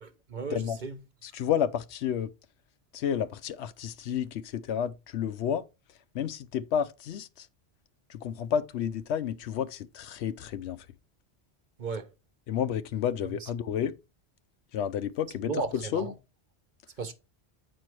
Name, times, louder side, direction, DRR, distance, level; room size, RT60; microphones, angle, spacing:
voice 1, 0.0-1.0 11.8-12.1 13.4-13.5 15.5-16.1 17.0-17.1, right 4 dB, 45° right, 1.0 m, -35 dB
voice 2, 1.2-2.3 2.9-5.6 6.1-7.5 8.1-10.9 12.5-14.0 14.7-15.5 15.9-16.1, left 9 dB, 85° left, 0.9 m, -31 dB
8.0 x 4.5 x 4.6 m
omnidirectional pair, 1.1 m